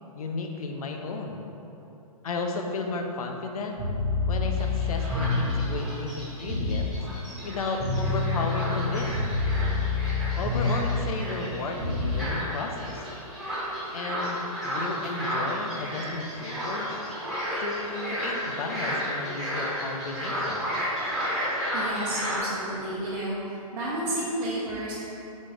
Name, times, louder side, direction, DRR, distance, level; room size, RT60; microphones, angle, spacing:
voice 1, 0.1-1.5 2.2-3.8 4.3-6.9 7.4-9.3 10.4-13.0 13.9-17.0 17.6-20.8, left 3 dB, 65° left, 3 dB, 0.6 m, -33 dB
sound 1, 3.8-5.6 6.5-6.9 7.8-11.0 11.8-12.2, left 3 dB, 25° right, 1.0 m, -27 dB
sound 2, 4.5-22.4, equal, ahead, 0.8 m, -33 dB
voice 2, 21.7-23.3 23.7-24.9, right 1 dB, 55° right, -8 dB, 0.8 m, -31 dB
4.1 x 3.6 x 3.3 m, 3.0 s
hypercardioid pair, 160°, 19 cm